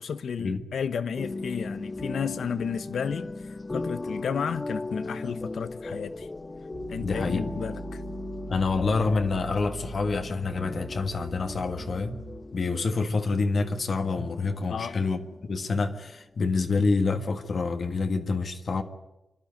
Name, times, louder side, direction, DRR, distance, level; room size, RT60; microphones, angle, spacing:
voice 1, 0.0-3.3 3.7-6.3 6.9-8.0 14.7-15.0, left 6 dB, 80° left, 1.0 m, -32 dB
sound 1, 1.2-16.2, left 2 dB, 25° left, 0.7 m, -38 dB
sound 2, 6.7-12.7, right 4 dB, 90° right, 3.9 m, -42 dB
voice 2, 7.0-7.5 8.5-12.2 12.5-18.8, left 4 dB, 55° left, 1.6 m, -27 dB
27.0 x 12.0 x 9.4 m
wide cardioid pair, 95°, 0 cm